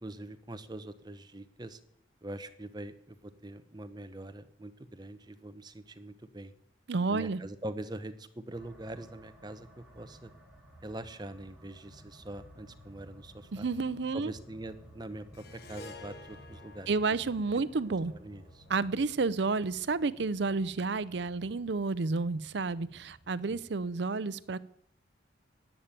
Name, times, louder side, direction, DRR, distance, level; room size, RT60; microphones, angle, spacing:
voice 1, 0.0-1.8 2.2-6.5 7.1-10.3 10.8-13.7 14.1-17.2 18.1-18.6 23.5-23.6, right 1 dB, 20° right, 11 dB, 0.8 m, -43 dB
voice 2, 6.9-7.4 13.5-14.3 16.9-18.1 18.7-24.6, right 4 dB, 65° right, 18 dB, 0.6 m, -30 dB
sound 1, 8.5-23.9, equal, 5° right, 2.7 m, -55 dB
Harp, 15.3-19.8, left 3 dB, 55° left, 1.3 m, -52 dB
11.0 x 8.9 x 9.1 m, 0.73 s
head